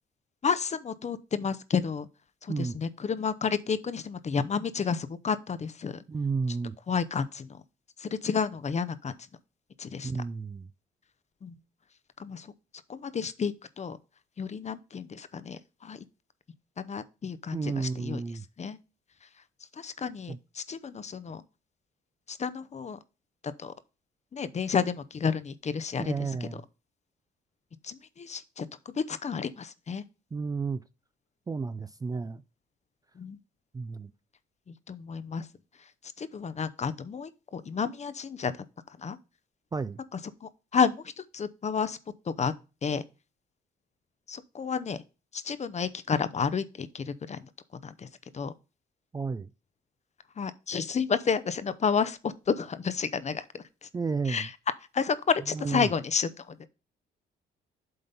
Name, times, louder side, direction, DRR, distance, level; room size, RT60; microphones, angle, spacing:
voice 1, 0.4-2.1 2.4-6.0 6.9-7.6 8.0-9.2 9.8-10.1 11.4-11.5 12.2-12.5 12.9-14.0 14.4-16.0 16.8-18.2 18.6-18.8 19.8-21.4 22.3-23.0 23.6-23.7 24.3-26.1 27.8-30.0 33.2-33.4 34.7-35.5 36.2-38.5 39.0-39.2 40.4-42.0 42.3-42.5 42.8-43.0 44.3-45.0 45.3-47.4 47.8-48.1 48.3-48.5 50.4-53.9 54.3-54.5 54.9-56.5, left 6 dB, 35° left, 0.7 m, -31 dB
voice 2, 6.1-6.7 10.0-10.7 17.5-18.4 20.3-20.4 26.0-26.6 30.3-30.8 31.5-32.4 33.7-34.1 39.7-40.0 49.1-49.5 53.9-54.5 55.5-55.9, right 4 dB, 20° right, 0.3 m, -32 dB
7.8 x 3.9 x 5.4 m
cardioid pair, 90°, 20 cm